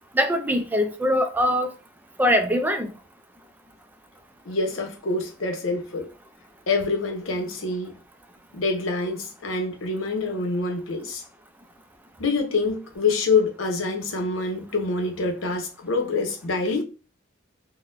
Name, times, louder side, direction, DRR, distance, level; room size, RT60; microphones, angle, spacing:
voice 1, 0.1-1.7 2.2-2.9, equal, 10° right, 0.4 m, -22 dB
voice 2, 4.5-6.1 6.7-7.9 8.5-11.2 12.2-16.8, left 3 dB, 85° left, 0.8 m, -26 dB
3.8 x 2.1 x 2.6 m
head